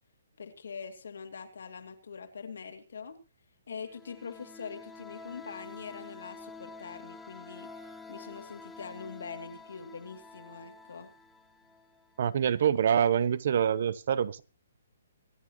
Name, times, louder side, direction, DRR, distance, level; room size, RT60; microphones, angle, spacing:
voice 1, 0.4-3.2 3.7-11.1, left 5 dB, 75° left, 2.5 m, -43 dB
sound 1, 3.8-12.4, left 3 dB, 5° left, 0.8 m, -49 dB
voice 2, 12.2-14.4, right 8 dB, 50° right, 0.8 m, -26 dB
25.0 x 9.3 x 3.0 m
hypercardioid pair, 165°, 0 cm